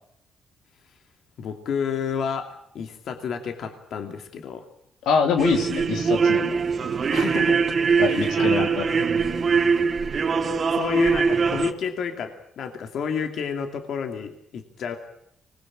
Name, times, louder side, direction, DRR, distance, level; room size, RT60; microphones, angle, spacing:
voice 1, 1.4-4.7 7.1-7.6 8.0-9.1 9.5-9.6 10.7-15.0, left 7 dB, 65° left, 6 dB, 2.6 m, -30 dB
voice 2, 5.0-6.6 8.0-8.8, left 6 dB, 85° left, 5 dB, 3.1 m, -24 dB
sound 1, 5.4-11.7, right 5 dB, 45° right, 2.1 m, -22 dB
24.5 x 20.5 x 8.6 m, 0.72 s
cardioid pair, 90°, 0 cm